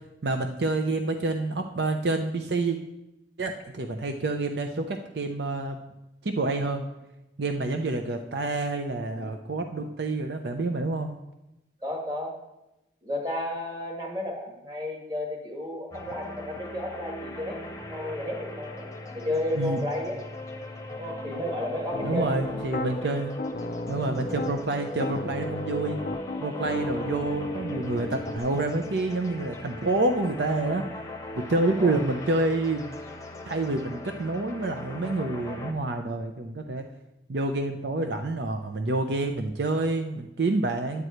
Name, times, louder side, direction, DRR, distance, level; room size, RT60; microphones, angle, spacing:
voice 1, 0.2-2.8 3.4-5.8 6.2-6.8 7.4-11.1 19.5-19.8 22.0-23.3 23.9-26.0 26.4-30.8 31.3-33.0 33.5-36.8 37.3-41.0, right 2 dB, 65° right, 5 dB, 0.6 m, -28 dB
voice 2, 9.1-9.5 11.8-12.4 13.0-18.9 19.1-20.2 21.0-22.6 31.8-32.0, left 1 dB, 20° right, -1 dB, 1.8 m, -33 dB
sound 1, 15.9-35.7, left 1 dB, 15° left, 0.8 m, -39 dB
Piano, 21.9-22.9 23.4-24.6 25.0-28.4, left 2 dB, 50° left, 0.4 m, -34 dB
9.7 x 4.7 x 7.9 m, 0.92 s
head